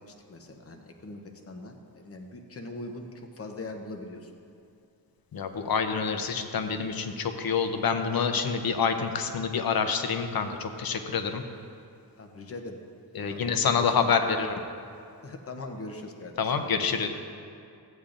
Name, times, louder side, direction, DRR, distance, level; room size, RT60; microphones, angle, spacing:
voice 1, 0.1-4.3 12.2-12.8 13.2-13.9 15.2-16.5, left 2 dB, 35° left, 3 dB, 0.8 m, -41 dB
voice 2, 5.3-11.4 13.1-14.5 16.4-17.1, left 6 dB, 65° left, 7 dB, 0.7 m, -27 dB
14.0 x 8.5 x 2.6 m, 2.5 s
wide cardioid pair, 105°, 39 cm